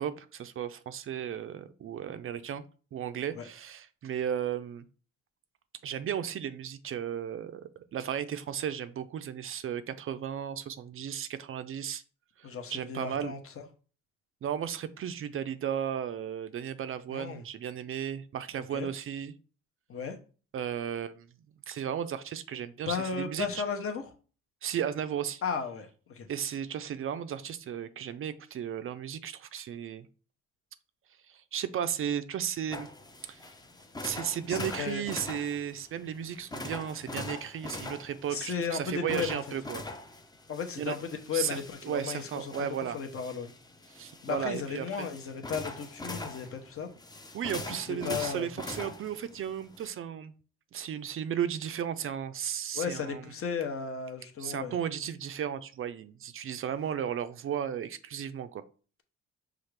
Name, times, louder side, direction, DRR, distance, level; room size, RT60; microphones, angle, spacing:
voice 1, 0.0-2.6 2.9-4.9 5.8-12.0 12.4-13.3 14.4-19.3 20.5-21.3 21.7-23.6 24.6-25.4 26.3-30.1 31.3-32.9 33.3-33.5 34.0-39.8 40.8-40.9 41.3-43.0 43.9-45.1 47.3-50.3 50.7-53.3 54.4-58.6, right 9 dB, 45° right, 0.4 m, -35 dB
voice 2, 12.4-13.6 17.1-17.4 18.7-18.9 19.9-20.2 22.9-24.1 25.4-26.3 34.5-35.0 38.3-39.4 40.5-42.7 42.9-43.5 44.2-46.9 47.5-47.6 47.9-48.5 52.7-54.7, left 6 dB, 50° left, 0.9 m, -35 dB
sound 1, 32.7-49.9, left 2 dB, 15° left, 0.5 m, -43 dB
5.7 x 2.5 x 3.2 m
cardioid pair, 90°, 30 cm